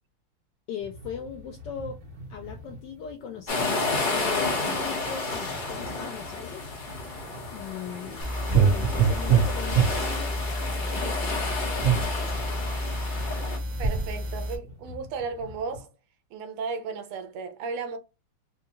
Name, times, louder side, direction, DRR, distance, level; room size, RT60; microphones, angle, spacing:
voice 1, 0.7-2.0 2.3-6.7 7.5-11.5 11.8-12.5, left 8 dB, 80° left, 1.0 m, -39 dB
sound 1, 0.8-15.8, left 1 dB, 70° right, 2.1 m, -47 dB
sound 2, 3.5-13.6, left 3 dB, 40° left, 0.7 m, -31 dB
sound 3, 8.2-14.6, right 5 dB, 45° right, 1.2 m, -26 dB
voice 2, 13.8-15.9 16.3-18.0, right 5 dB, 85° right, 1.7 m, -34 dB
4.6 x 2.2 x 2.9 m
omnidirectional pair, 2.4 m